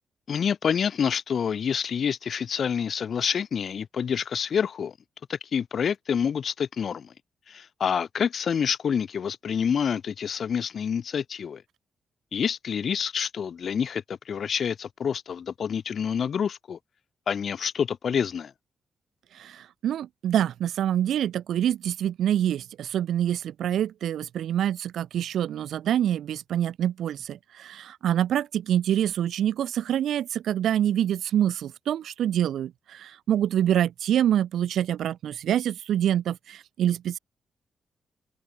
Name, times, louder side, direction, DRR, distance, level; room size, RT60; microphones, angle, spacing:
voice 1, 0.3-4.9 5.3-7.1 7.5-11.6 12.3-16.8 17.3-18.5, left 7 dB, 50° left, 0.7 m, -27 dB
voice 2, 19.3-37.2, right 10 dB, 80° right, 0.6 m, -26 dB
open air
wide cardioid pair, 155°, 0 cm